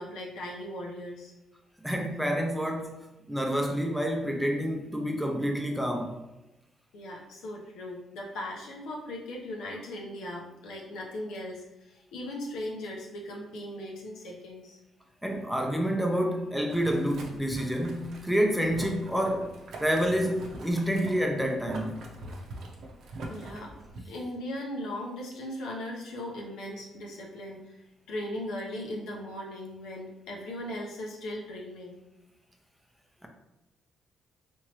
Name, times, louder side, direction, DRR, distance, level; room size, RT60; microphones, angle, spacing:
voice 1, 0.0-1.3 6.9-14.8 23.3-23.7 24.0-27.7 28.1-31.9, left 1 dB, 85° left, -2 dB, 0.8 m, -38 dB
voice 2, 1.8-3.0 3.3-6.2 15.2-19.5 19.8-21.9, equal, ahead, 1 dB, 0.6 m, -28 dB
Boiling, 16.7-24.0, right 2 dB, 70° right, 0.7 m, -43 dB
3.5 x 3.0 x 3.0 m, 0.95 s
cardioid pair, 90°, 0 cm